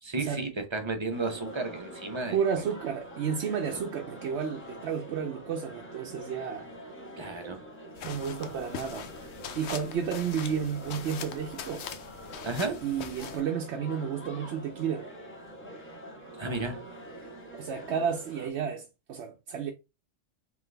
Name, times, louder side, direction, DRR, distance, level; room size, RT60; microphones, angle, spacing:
voice 1, 0.0-2.6 3.7-3.8 7.2-7.6 12.4-12.8 16.4-16.8, right 3 dB, 30° right, 0.7 m, -33 dB
sound 1, 1.1-18.5, equal, 10° left, 1.1 m, -45 dB
voice 2, 2.3-6.7 8.0-9.1 9.5-11.9 12.8-15.1 17.2-19.7, right 7 dB, 80° right, 0.9 m, -32 dB
sound 2, 8.0-13.4, left 8 dB, 75° left, 0.9 m, -42 dB
3.8 x 3.3 x 3.3 m
omnidirectional pair, 1.2 m